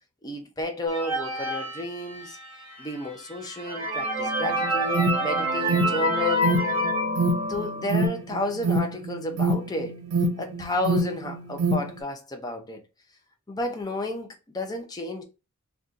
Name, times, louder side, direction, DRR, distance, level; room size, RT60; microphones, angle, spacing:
voice 1, 0.2-2.4 2.8-6.5 7.5-10.0 10.4-12.8 13.5-15.2, left 2 dB, 15° left, 0.5 m, -32 dB
sound 1, 0.9-2.5 3.1-3.2 3.5-8.1, equal, 25° right, 1.3 m, -27 dB
Alarm, 4.4-11.9, right 3 dB, 75° right, 0.6 m, -27 dB
2.6 x 2.3 x 3.7 m
head